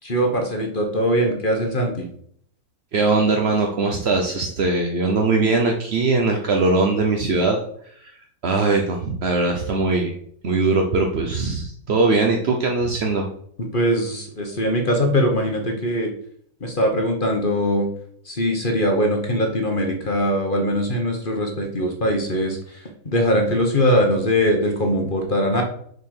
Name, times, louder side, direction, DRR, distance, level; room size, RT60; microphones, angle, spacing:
voice 1, 0.0-2.1 13.7-16.1 16.6-17.9 18.3-22.6 23.0-25.6, equal, 30° left, 3 dB, 1.1 m, -21 dB
voice 2, 2.9-7.6 7.9-8.1 8.4-10.1 10.4-13.3, right 3 dB, 50° right, 2 dB, 0.8 m, -21 dB
6.7 x 4.5 x 6.5 m, 0.65 s
omnidirectional pair, 2.0 m